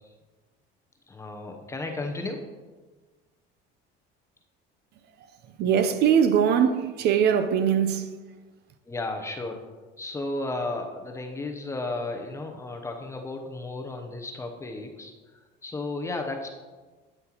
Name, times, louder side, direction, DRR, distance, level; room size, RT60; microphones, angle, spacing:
voice 1, 1.1-2.4 8.9-9.6 10.0-16.5, left 2 dB, 15° left, 0.7 m, -34 dB
voice 2, 5.2-8.2, right 8 dB, 55° right, 0.6 m, -22 dB
9.0 x 7.5 x 2.9 m
cardioid pair, 145°, 21 cm